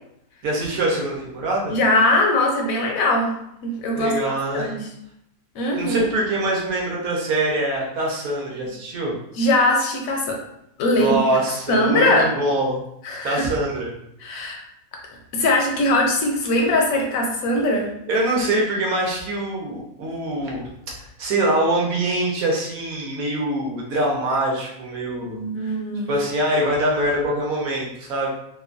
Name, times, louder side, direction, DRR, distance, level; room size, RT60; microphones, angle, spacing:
voice 1, 0.4-1.7 4.0-4.7 5.7-9.1 11.0-12.8 13.2-13.9 18.1-25.4 26.1-28.3, right 1 dB, 65° right, -2 dB, 1.1 m, -24 dB
voice 2, 1.7-3.3 3.6-4.1 4.5-4.8 5.5-6.1 9.4-10.4 10.8-11.2 11.7-12.3 13.0-13.5 14.2-14.6 15.3-17.9 25.2-26.1, left 1 dB, 70° left, 1 dB, 0.9 m, -20 dB
2.9 x 2.2 x 2.5 m, 0.78 s
omnidirectional pair, 1.7 m